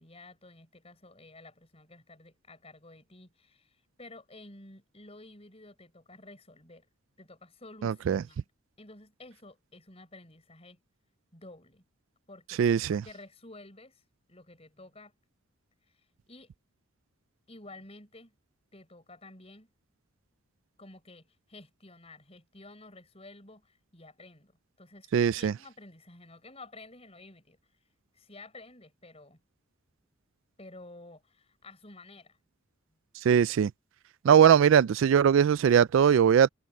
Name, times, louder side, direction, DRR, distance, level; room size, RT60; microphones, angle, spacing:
voice 1, 0.0-6.9 7.2-8.5 8.8-10.8 11.3-11.8 12.3-12.6 12.9-14.0 14.3-15.1 16.3-16.5 17.5-18.4 18.7-19.7 20.8-24.5 24.8-27.6 28.1-29.4 30.6-32.4, left 2 dB, 30° left, 5.9 m, -51 dB
voice 2, 7.8-8.2 12.6-13.0 25.1-25.5 33.2-33.7 34.2-36.5, right 8 dB, 70° right, 0.3 m, -21 dB
head